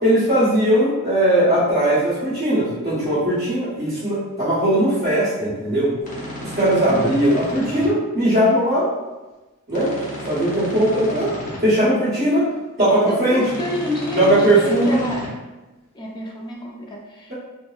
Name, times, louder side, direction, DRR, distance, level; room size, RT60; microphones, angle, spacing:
voice 1, 0.0-5.9 6.4-8.9 9.7-9.9 10.3-11.3 11.6-12.5 12.8-13.5 14.1-15.0, right 1 dB, 35° right, -16 dB, 1.3 m, -19 dB
sound 1, 6.0-7.9 9.7-11.6 13.4-15.3, left 1 dB, 40° left, 0.8 m, -33 dB
voice 2, 12.9-15.3 15.9-17.3, left 1 dB, 20° left, -1 dB, 0.4 m, -29 dB
3.6 x 2.0 x 2.4 m, 1.1 s
head